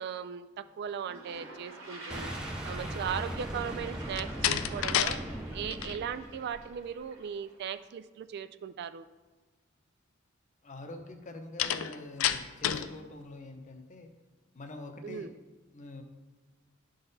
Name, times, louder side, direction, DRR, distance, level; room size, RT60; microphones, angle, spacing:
voice 1, 0.0-2.3 2.6-5.2 5.5-9.1 15.0-15.3, right 8 dB, 55° right, 12 dB, 0.3 m, -38 dB
Toilet flush, 0.7-0.8 1.0-7.8, right 2 dB, 70° right, 1.7 m, -47 dB
Boom, 2.1-7.0, right 1 dB, 5° right, 0.5 m, -39 dB
Slam, 4.1-5.2 5.5-6.0 11.6-12.9, left 10 dB, 90° left, 0.4 m, -29 dB
voice 2, 10.6-14.1 14.5-15.3 15.7-16.0, left 2 dB, 40° left, 5 dB, 0.8 m, -45 dB
11.0 x 3.9 x 4.0 m, 1.3 s
head